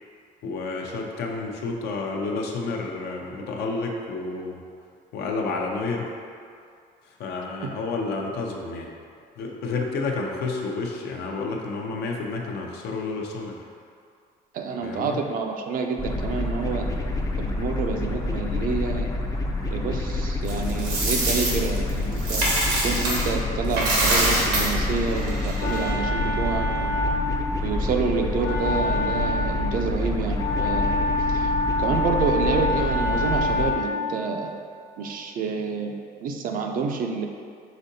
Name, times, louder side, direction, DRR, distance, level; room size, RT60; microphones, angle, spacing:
voice 1, 0.4-4.6 5.1-6.2 7.2-8.9 9.4-13.7 14.8-15.2, left 3 dB, 75° left, 0 dB, 0.6 m, -30 dB
voice 2, 14.5-16.9 17.4-19.1 19.7-22.4 22.8-26.9 27.6-30.9 31.3-31.5 31.8-34.5 35.0-35.9 36.2-37.3, right 5 dB, 55° right, 3 dB, 0.5 m, -28 dB
sound 1, 16.0-33.7, left 2 dB, 20° left, 0.4 m, -28 dB
Coin (dropping), 20.5-23.3 23.6-25.9, right 2 dB, 85° right, 1.2 m, -25 dB
Wind instrument woodwind instrument, 25.0-34.1, left 2 dB, 55° left, 1.0 m, -27 dB
5.0 x 3.6 x 2.7 m, 2.3 s
cardioid pair, 110°, 17 cm